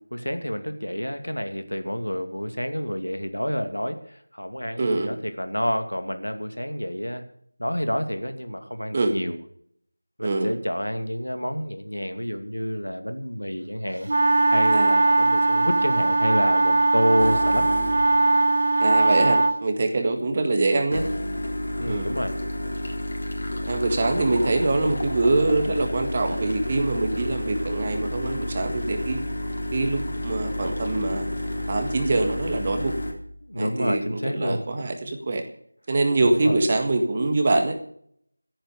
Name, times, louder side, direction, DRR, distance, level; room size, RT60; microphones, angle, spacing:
voice 1, 0.1-7.2 7.6-9.4 10.2-14.1 14.5-17.7 21.8-22.4 33.4-34.7 36.2-36.7, equal, 85° left, 8 dB, 2.4 m, -29 dB
voice 2, 4.8-5.1 8.9-9.1 10.2-10.5 14.7-14.9 18.8-21.1 21.9-22.1 23.7-29.2 29.7-31.3 31.7-33.0 33.6-35.4 35.9-37.7, right 2 dB, 25° right, 6 dB, 1.8 m, -24 dB
sound 1, 14.1-19.6, right 2 dB, 45° right, 1.2 m, -20 dB
sound 2, 17.2-18.1 20.9-33.1, left 1 dB, 50° left, 3.7 m, -30 dB
14.0 x 10.5 x 6.8 m, 0.66 s
figure-of-eight pair, 170°, 0 cm